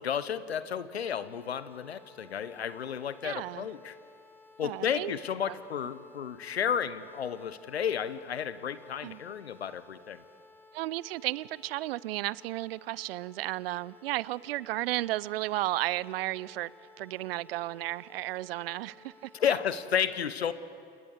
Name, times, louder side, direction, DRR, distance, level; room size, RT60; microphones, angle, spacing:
voice 1, 0.0-4.0 4.6-10.2 19.3-20.5, left 8 dB, 85° left, 15 dB, 1.0 m, -32 dB
sound 1, 1.0-19.9, left 3 dB, 5° left, 3.8 m, -57 dB
voice 2, 3.2-3.7 4.6-5.1 5.5-5.6 9.0-9.2 10.7-16.7 17.0-19.3, right 17 dB, 70° right, 22 dB, 0.6 m, -33 dB
29.0 x 20.5 x 8.2 m, 2.5 s
figure-of-eight pair, 70°, 31 cm